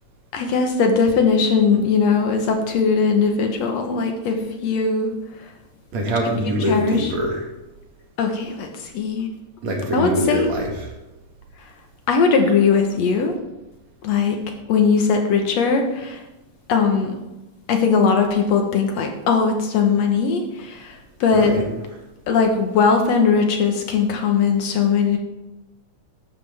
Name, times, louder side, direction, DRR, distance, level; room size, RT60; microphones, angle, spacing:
voice 1, 0.3-5.1 6.7-7.1 8.2-9.3 9.9-10.5 12.1-13.4 14.0-14.4 14.7-16.2 16.7-17.2 17.7-21.5 22.3-25.2, left 5 dB, 70° left, 4 dB, 2.1 m, -19 dB
voice 2, 5.9-7.4 9.6-10.7 21.3-21.6, equal, 65° right, -1 dB, 3.0 m, -23 dB
12.5 x 8.4 x 3.5 m, 1.0 s
omnidirectional pair, 3.4 m